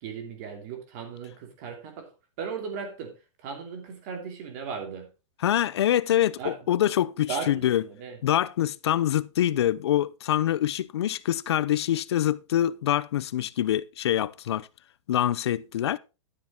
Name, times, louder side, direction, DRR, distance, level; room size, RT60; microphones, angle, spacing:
voice 1, 0.0-2.1 2.4-5.1 6.4-6.6 7.3-8.2, right 6 dB, 30° right, 2.8 m, -37 dB
voice 2, 5.4-7.8 8.2-14.7 15.1-16.0, left 11 dB, 55° left, 0.6 m, -25 dB
12.5 x 7.6 x 3.7 m
supercardioid pair, 180°, 16 cm